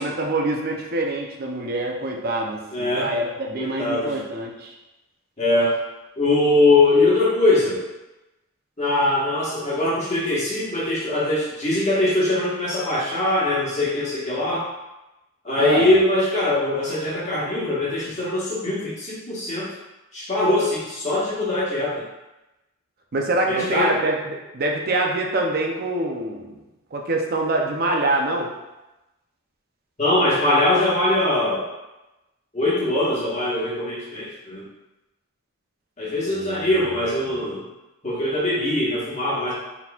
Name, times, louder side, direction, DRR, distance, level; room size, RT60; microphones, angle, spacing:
voice 1, 0.0-4.7 15.6-15.9 23.1-26.6 26.9-28.5 36.2-36.7 37.3-37.4, right 2 dB, 45° right, 0 dB, 0.5 m, -25 dB
voice 2, 2.7-3.1 3.6-4.2 5.4-5.7 6.2-7.8 8.8-14.6 15.4-19.7 20.1-22.0 23.5-23.9 30.0-31.6 32.5-34.6 36.0-37.6 38.0-39.5, left 2 dB, 35° left, -8 dB, 1.4 m, -22 dB
4.2 x 4.0 x 2.4 m, 1.0 s
head